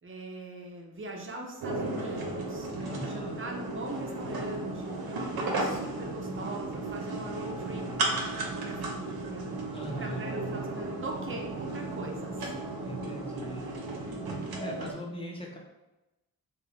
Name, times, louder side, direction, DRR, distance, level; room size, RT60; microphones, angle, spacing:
voice 1, 0.0-2.7 3.0-7.9 8.5-9.5 10.0-12.5, right 2 dB, 35° right, 0 dB, 0.6 m, -41 dB
sound 1, 1.6-14.9, right 2 dB, 80° right, 0.6 m, -34 dB
voice 2, 2.8-3.4 9.7-10.4 12.8-13.7 14.6-15.6, equal, 15° left, -1 dB, 0.7 m, -40 dB
2.4 x 2.0 x 2.9 m, 1.0 s
cardioid pair, 50°, 37 cm